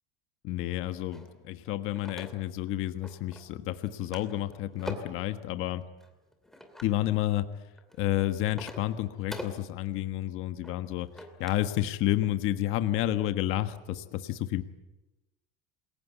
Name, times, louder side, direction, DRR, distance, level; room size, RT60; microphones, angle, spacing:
voice 1, 0.4-5.8 6.8-7.4 8.0-11.1 11.4-14.6, left 14 dB, 45° left, 9 dB, 1.4 m, -30 dB
sound 1, 1.1-2.7 3.0-3.6 3.9-5.3 6.0-7.0 7.6-11.7 12.0-12.3, left 1 dB, ahead, 2.5 m, -44 dB
28.5 x 22.0 x 8.4 m, 1.0 s
cardioid pair, 175°, 30 cm